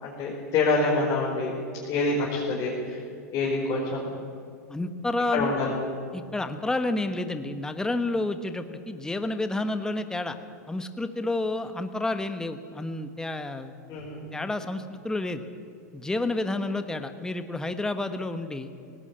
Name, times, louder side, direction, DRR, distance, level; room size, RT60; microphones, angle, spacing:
voice 1, 0.0-1.5 1.9-3.0 3.3-4.1 5.3-5.7 13.9-14.2, left 3 dB, 40° left, -3 dB, 4.6 m, -26 dB
voice 2, 4.7-5.5 6.1-10.4 10.7-13.7 14.3-15.4 15.9-18.7, left 2 dB, 5° left, 9 dB, 1.1 m, -30 dB
18.0 x 17.5 x 8.9 m, 2.3 s
hypercardioid pair, 120°, 9 cm